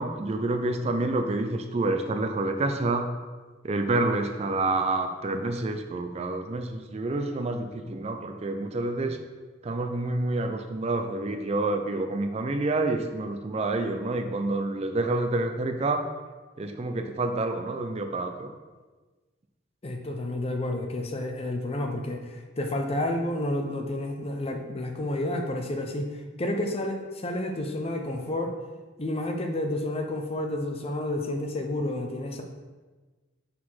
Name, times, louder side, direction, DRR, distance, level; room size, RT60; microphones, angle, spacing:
voice 1, 0.0-3.1 3.6-9.2 9.6-16.1 16.6-18.5, right 2 dB, 35° right, 6 dB, 0.4 m, -28 dB
voice 2, 19.8-28.5 29.0-32.4, left 1 dB, 30° left, 4 dB, 0.6 m, -30 dB
4.7 x 4.1 x 5.6 m, 1.3 s
head